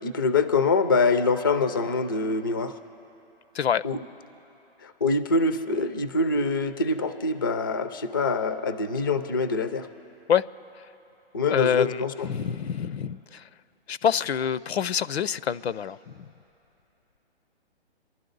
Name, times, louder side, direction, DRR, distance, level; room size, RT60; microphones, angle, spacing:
voice 1, 0.0-2.8 3.8-4.0 4.8-9.9 11.3-12.3, left 3 dB, 20° left, 0.3 m, -25 dB
voice 2, 11.5-13.4 13.9-16.3, left 8 dB, 85° left, 0.6 m, -26 dB
28.0 x 11.5 x 3.9 m
hypercardioid pair, 160°, 31 cm